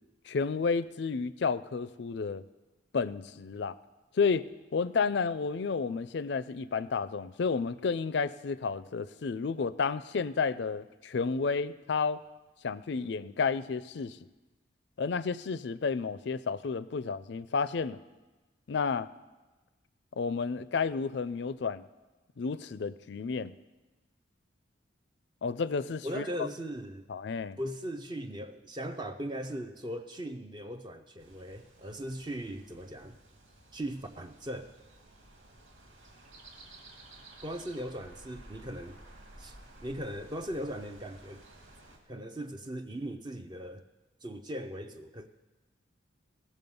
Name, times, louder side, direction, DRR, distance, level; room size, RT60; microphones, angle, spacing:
voice 1, 0.3-2.4 2.9-3.7 4.2-4.5 4.7-12.2 12.6-14.2 15.0-18.0 18.7-19.1 20.2-21.8 22.4-23.6 25.4-26.2 27.1-27.6, left 5 dB, 60° left, 16 dB, 0.4 m, -31 dB
voice 2, 26.0-27.1 27.6-33.2 33.7-34.7 37.4-39.0 39.4-39.6 39.8-41.4 42.1-43.8 44.2-45.3, equal, 20° right, 7 dB, 0.5 m, -39 dB
sound 1, 31.2-42.0, right 1 dB, 85° right, 2.2 m, -54 dB
18.0 x 7.3 x 5.4 m, 1.2 s
head